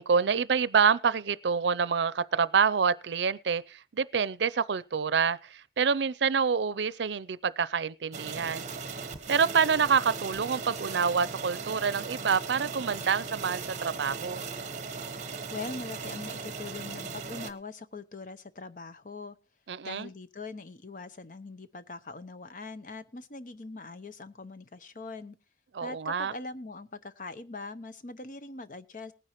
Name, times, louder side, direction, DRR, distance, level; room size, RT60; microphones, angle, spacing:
voice 1, 0.0-8.7 9.3-14.4 19.7-20.1 25.7-26.3, right 6 dB, 85° right, 0.5 m, -27 dB
sound 1, 8.1-17.5, right 4 dB, 45° right, 1.1 m, -38 dB
voice 2, 15.5-19.4 19.8-25.4 25.8-29.1, left 3 dB, 45° left, 0.8 m, -42 dB
19.0 x 10.0 x 3.0 m
head